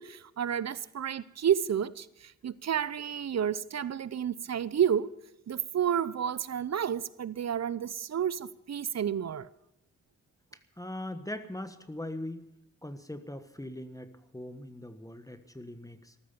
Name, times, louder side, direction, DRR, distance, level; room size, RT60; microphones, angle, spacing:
voice 1, 0.0-5.1 5.5-9.5, right 8 dB, 55° right, 0.7 m, -30 dB
voice 2, 10.8-12.5 12.8-16.1, left 1 dB, 10° left, 1.4 m, -41 dB
14.0 x 13.0 x 7.0 m
cardioid pair, 50°, 31 cm